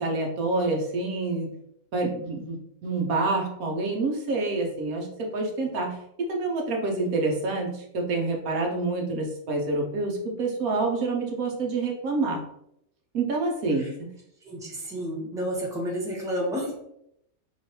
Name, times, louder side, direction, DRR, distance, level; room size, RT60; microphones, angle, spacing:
voice 1, 0.0-1.5 1.9-2.6 2.8-6.0 6.3-12.4 13.1-14.1, right 3 dB, 80° right, 1 dB, 1.3 m, -27 dB
voice 2, 14.4-16.7, equal, 5° right, -3 dB, 0.9 m, -30 dB
3.3 x 3.1 x 4.3 m, 0.75 s
omnidirectional pair, 1.5 m